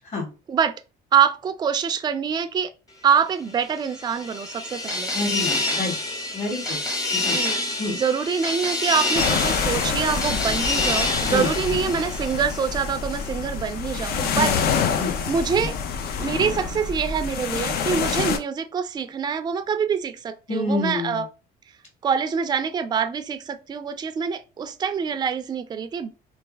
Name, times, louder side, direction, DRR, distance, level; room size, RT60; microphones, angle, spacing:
voice 1, 1.1-2.7 3.0-5.1 7.3-7.6 7.9-14.5 15.3-15.8 16.2-21.3 22.0-26.1, right 7 dB, 25° right, 0.4 m, -25 dB
sound 1, 3.6-12.8, left 2 dB, 20° left, 0.9 m, -27 dB
voice 2, 5.1-5.9 6.3-6.8 7.1-7.3 7.8-7.9 11.3-11.5 14.3-14.6 15.0-15.1 20.5-21.2, left 3 dB, 45° left, 1.8 m, -27 dB
sound 2, 9.1-18.4, left 6 dB, 65° left, 0.6 m, -26 dB
3.1 x 2.4 x 3.3 m
cardioid pair, 110°, 17 cm